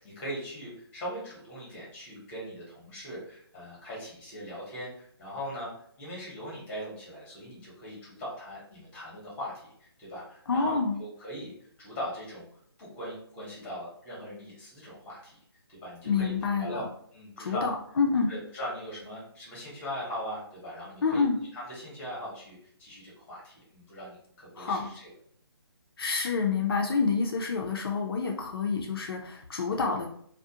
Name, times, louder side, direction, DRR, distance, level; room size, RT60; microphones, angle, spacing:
voice 1, 0.0-9.7 10.0-12.5 12.8-15.4 15.7-16.8 17.1-17.7 18.3-21.2 21.5-25.1, equal, 10° left, -6 dB, 0.8 m, -40 dB
voice 2, 10.5-11.0 16.0-16.8 17.4-18.3 21.0-21.4 24.6-24.9 26.0-30.1, left 4 dB, 60° left, 1 dB, 0.4 m, -28 dB
2.3 x 2.1 x 2.7 m, 0.65 s
hypercardioid pair, 160°, 14 cm